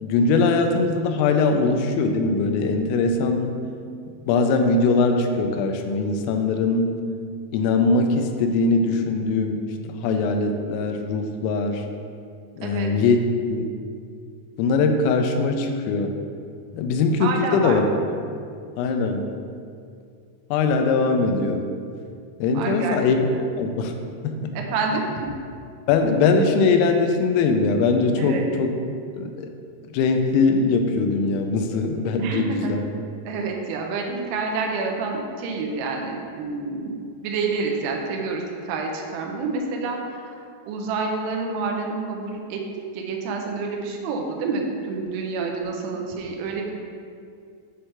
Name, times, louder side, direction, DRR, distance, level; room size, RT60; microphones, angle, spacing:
voice 1, 0.0-3.5 4.3-7.0 7.5-9.6 10.0-11.8 12.6-13.2 13.5-13.7 14.6-16.1 16.7-17.9 18.8-19.3 20.5-21.7 22.4-23.2 23.6-23.9 24.2-24.5 25.9-28.7 29.2-29.5 29.9-32.8, left 4 dB, 85° left, 5 dB, 3.2 m, -21 dB
voice 2, 17.2-17.8 22.5-23.0 23.3-23.5 24.5-25.3 28.2-28.5 32.2-36.9 37.2-42.6 43.0-46.7, right 4 dB, 85° right, 1 dB, 3.4 m, -28 dB
9.4 x 3.2 x 5.7 m, 2.3 s
omnidirectional pair, 5.9 m